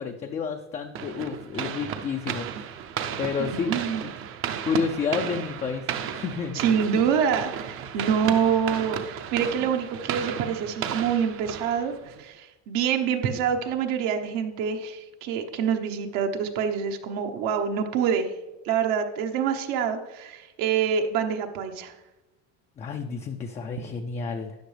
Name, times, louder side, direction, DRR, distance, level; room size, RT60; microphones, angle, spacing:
voice 1, 0.0-2.7 3.2-3.7 4.0-4.1 4.6-7.0 22.8-24.6, left 5 dB, 20° left, 5 dB, 0.4 m, -30 dB
sound 1, 1.0-12.2, right 9 dB, 40° right, 0.6 m, -34 dB
voice 2, 3.4-4.1 6.5-18.3 18.6-21.9, right 7 dB, 70° right, 5 dB, 1.1 m, -26 dB
13.0 x 9.0 x 3.3 m, 1.1 s
cardioid pair, 150°, 34 cm